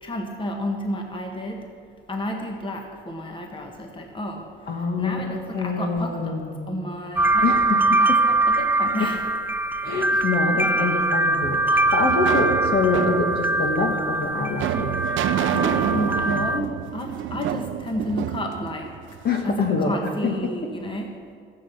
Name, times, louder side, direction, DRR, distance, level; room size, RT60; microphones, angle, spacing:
voice 1, 0.0-1.7 2.1-6.4 6.7-9.2 10.1-10.2 10.5-10.9 15.3-19.2 19.4-21.1, left 1 dB, 25° left, 2 dB, 1.7 m, -31 dB
voice 2, 4.7-6.6 7.4-8.2 9.8-14.9 19.2-20.5, left 3 dB, 50° left, 3 dB, 1.9 m, -25 dB
sound 1, 7.2-16.6, right 2 dB, 10° right, 0.5 m, -22 dB
sound 2, 11.4-19.5, right 11 dB, 75° right, 0.5 m, -28 dB
13.0 x 7.6 x 8.5 m, 2.1 s
cardioid pair, 90°, 20 cm